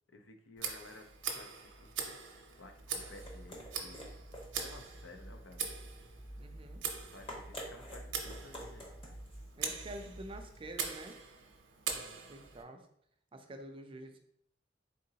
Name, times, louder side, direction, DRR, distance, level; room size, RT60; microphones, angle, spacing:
voice 1, 0.1-1.9 2.3-4.2 4.6-5.7 7.0-8.9 11.9-12.3, left 2 dB, 80° left, 5 dB, 0.5 m, -55 dB
Tick, 0.6-12.6, right 6 dB, 80° right, 0.6 m, -43 dB
sound 1, 2.6-10.8, equal, 30° left, 0.9 m, -49 dB
voice 2, 6.4-6.8 9.6-11.2 12.3-12.8 13.3-14.2, right 1 dB, 30° right, 5 dB, 0.4 m, -47 dB
3.8 x 3.7 x 2.8 m, 0.71 s
head